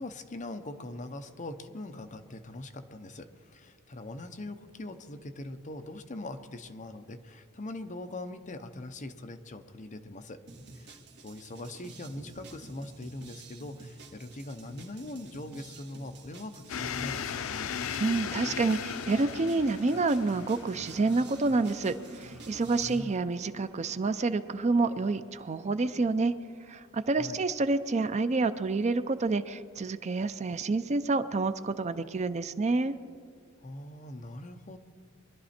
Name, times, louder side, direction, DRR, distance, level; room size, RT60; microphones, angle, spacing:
voice 1, 0.0-10.4 10.7-17.7 22.8-23.1 27.1-27.4 33.6-34.8, left 2 dB, 40° left, 8 dB, 0.8 m, -42 dB
sound 1, 10.5-23.0, right 3 dB, 60° right, 1.7 m, -50 dB
sound 2, 16.7-23.2, left 7 dB, 90° left, 0.5 m, -38 dB
voice 2, 18.0-26.3 26.7-32.9, right 3 dB, 35° right, 12 dB, 0.5 m, -28 dB
sound 3, 18.6-25.1 25.3-25.9 26.6-26.7 27.6-27.7 28.2-28.5, right 2 dB, 75° right, 1.8 m, -51 dB
23.5 x 11.5 x 4.3 m, 2.2 s
head